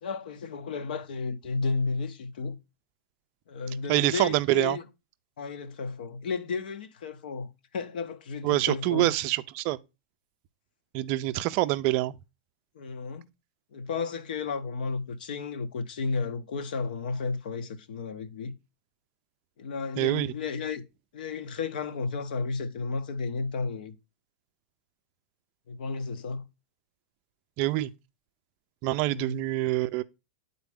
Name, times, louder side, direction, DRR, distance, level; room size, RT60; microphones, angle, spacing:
voice 1, 0.0-2.6 3.5-4.8 5.4-9.1 12.7-13.2 13.7-18.5 19.6-20.8 21.1-24.0 25.7-26.4 29.1-29.4, left 4 dB, 75° left, 0.9 m, -33 dB
voice 2, 3.9-4.8 8.4-9.8 10.9-12.2 20.0-20.3 27.6-27.9 28.8-30.0, right 17 dB, 35° right, 0.4 m, -26 dB
9.4 x 4.0 x 3.4 m
supercardioid pair, 165°, 5 cm